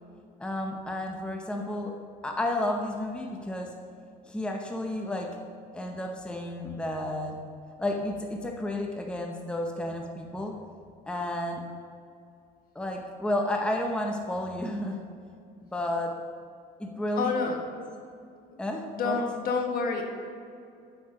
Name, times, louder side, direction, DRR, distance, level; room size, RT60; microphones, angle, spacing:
voice 1, 0.4-1.9 2.2-3.7 4.3-5.4 5.7-7.4 7.8-10.5 11.1-11.7 12.7-15.0 15.6-16.2 16.8-17.3 18.6-19.2, left 1 dB, 5° left, 2 dB, 0.8 m, -31 dB
voice 2, 17.1-17.6 18.9-20.0, left 4 dB, 60° left, 2 dB, 1.4 m, -28 dB
8.4 x 5.8 x 5.1 m, 2.4 s
cardioid pair, 110°, 17 cm